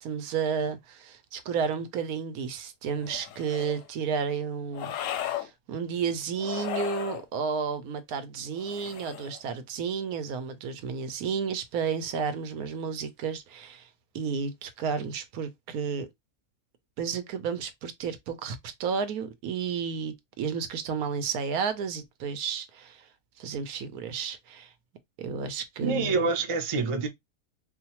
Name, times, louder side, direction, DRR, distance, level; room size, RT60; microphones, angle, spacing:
voice 1, 0.0-13.9 14.1-16.1 17.0-23.1 23.4-24.7 25.2-26.2, right 6 dB, 75° right, 1.1 m, -32 dB
sound 1, 3.0-3.8 4.7-5.5 6.4-7.2 8.6-9.4, left 12 dB, 70° left, 0.8 m, -35 dB
voice 2, 25.8-27.1, right 4 dB, 55° right, 0.3 m, -26 dB
4.7 x 2.1 x 2.8 m
omnidirectional pair, 1.6 m